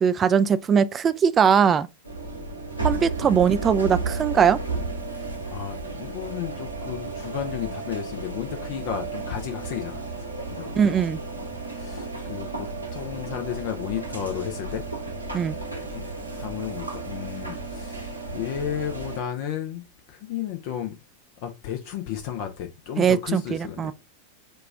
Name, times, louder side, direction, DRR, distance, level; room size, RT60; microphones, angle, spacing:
voice 1, 0.0-1.9 2.8-4.6 10.8-11.2 15.3-15.6 23.0-23.9, right 7 dB, 25° right, 0.3 m, -20 dB
sound 1, 2.0-19.2, right 3 dB, 85° right, 1.1 m, -33 dB
voice 2, 5.2-10.0 10.5-10.8 11.7-14.8 15.8-16.1 16.3-20.9 21.4-23.9, left 10 dB, 45° left, 0.6 m, -33 dB
4.9 x 2.4 x 3.5 m
figure-of-eight pair, 90°, 0 cm